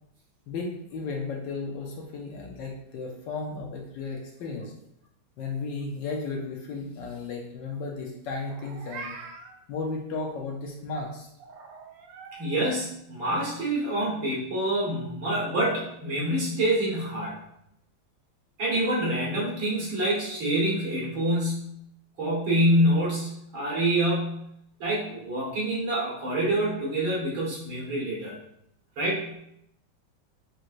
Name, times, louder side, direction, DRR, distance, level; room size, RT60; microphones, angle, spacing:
voice 1, 0.5-4.7 5.4-9.2 9.7-11.3, left 3 dB, 70° left, 0 dB, 1.3 m, -34 dB
Meow, 8.4-9.6 11.4-12.5, right 4 dB, 90° right, 1.5 m, -43 dB
voice 2, 12.4-17.4 18.6-21.8 22.2-24.4 24.8-28.4 29.0-29.2, right 1 dB, 70° right, -6 dB, 2.3 m, -26 dB
6.2 x 3.0 x 2.6 m, 0.78 s
omnidirectional pair, 2.3 m